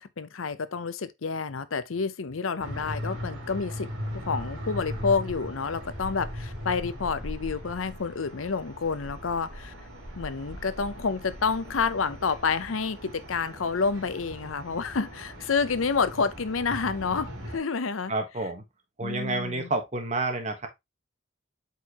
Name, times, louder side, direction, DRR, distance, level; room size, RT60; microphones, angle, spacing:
voice 1, 0.0-3.9 4.1-9.7 10.2-18.1 19.0-19.7, left 5 dB, 85° left, 0.7 m, -29 dB
sound 1, 2.6-17.6, equal, 75° right, 2.7 m, -39 dB
voice 2, 18.1-18.6 19.0-20.7, right 2 dB, 35° right, 1.4 m, -29 dB
8.1 x 4.5 x 2.9 m
head